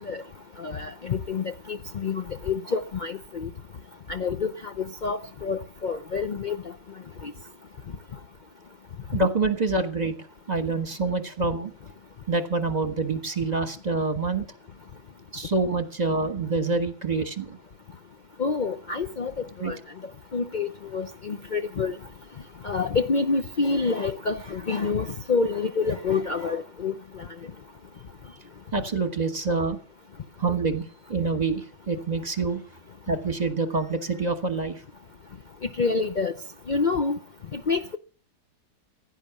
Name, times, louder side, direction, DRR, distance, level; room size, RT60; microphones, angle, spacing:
voice 1, 0.6-3.5 4.1-6.6 7.2-7.3 18.4-19.8 20.3-21.9 22.6-26.9 35.8-36.3 36.7-37.2 37.5-38.0, left 4 dB, 75° left, 0.4 m, -27 dB
voice 2, 9.1-10.1 10.5-11.7 12.3-14.5 15.3-17.6 19.6-19.7 28.7-29.8 30.4-32.6 33.1-34.8, right 3 dB, 25° right, 1.3 m, -26 dB
16.0 x 10.0 x 7.1 m
omnidirectional pair, 1.9 m